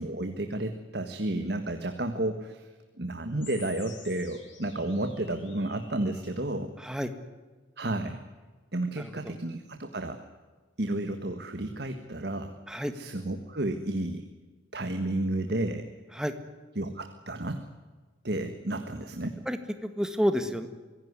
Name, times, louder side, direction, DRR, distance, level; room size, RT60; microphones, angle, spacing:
voice 1, 0.0-2.7 3.0-6.7 7.8-8.2 8.7-10.2 10.8-12.5 12.9-14.3 14.7-15.9 16.7-17.6 18.2-19.4, right 1 dB, 60° right, 7 dB, 1.6 m, -32 dB
sound 1, 3.4-6.4, left 6 dB, 85° left, 7.2 m, -50 dB
voice 2, 6.8-7.1 9.0-9.1 12.7-12.9 16.1-16.3 19.5-20.7, equal, 5° right, 8 dB, 1.7 m, -29 dB
25.0 x 16.5 x 9.7 m, 1.3 s
head